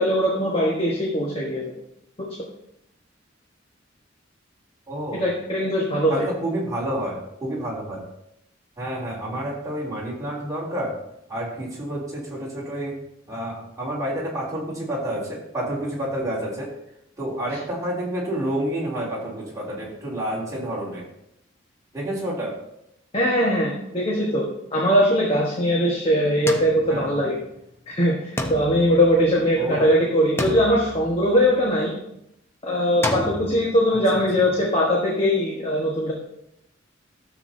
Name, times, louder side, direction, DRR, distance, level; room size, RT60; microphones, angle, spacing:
voice 1, 0.0-1.6 2.2-2.3 5.2-6.2 23.1-24.5 24.7-27.4 27.9-31.9 32.6-36.1, equal, 30° left, -3 dB, 1.3 m, -21 dB
voice 2, 4.9-5.3 6.1-8.1 8.8-11.0 11.3-13.0 13.3-16.7 17.2-21.1 21.9-22.6 26.9-27.2 29.6-29.9 34.1-34.5, right 1 dB, 15° right, -6 dB, 3.1 m, -29 dB
sound 1, 26.5-27.7 28.4-29.8 30.4-31.7 33.0-33.6, left 1 dB, 15° left, 0.7 m, -31 dB
13.0 x 7.3 x 2.7 m, 0.80 s
head